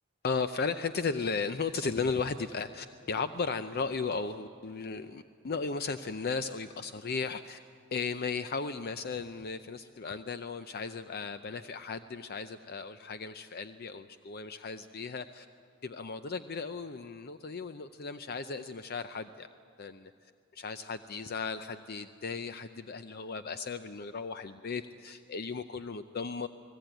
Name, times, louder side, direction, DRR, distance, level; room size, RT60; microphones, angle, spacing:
voice 1, 0.2-7.6 7.9-15.5 15.8-19.5 19.8-26.5, left 4 dB, 50° left, 11 dB, 0.5 m, -36 dB
29.5 x 19.5 x 9.1 m, 2.4 s
head